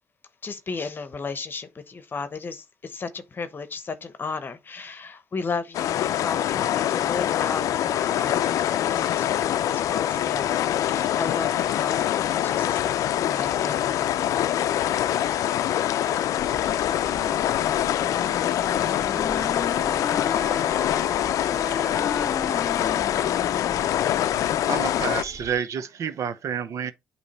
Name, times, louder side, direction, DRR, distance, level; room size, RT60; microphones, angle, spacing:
voice 1, 0.4-14.1, left 4 dB, 35° left, 0.9 m, -35 dB
sound 1, 5.7-25.2, left 11 dB, 75° left, 0.5 m, -24 dB
sound 2, 16.4-25.6, right 1 dB, 35° right, 2.9 m, -45 dB
voice 2, 17.2-18.3 18.6-19.5 25.4-25.5, right 1 dB, 15° right, 2.0 m, -44 dB
Wind instrument woodwind instrument, 18.0-23.9, left 4 dB, 20° left, 1.4 m, -35 dB
voice 3, 24.6-26.9, right 7 dB, 65° right, 0.8 m, -29 dB
8.3 x 3.1 x 4.2 m
cardioid pair, 95°, 6 cm